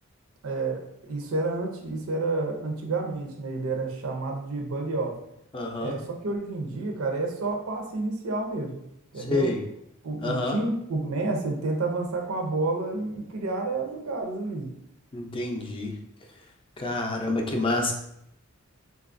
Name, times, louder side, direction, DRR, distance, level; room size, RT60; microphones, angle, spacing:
voice 1, 0.4-5.1 5.8-8.8 9.1-9.5 10.0-14.7, right 3 dB, 85° right, 2 dB, 0.5 m, -30 dB
voice 2, 5.5-6.0 9.2-9.6 10.2-10.6 15.1-15.9 16.8-17.9, left 2 dB, 25° left, 1 dB, 0.4 m, -28 dB
3.9 x 2.3 x 2.5 m, 0.78 s
head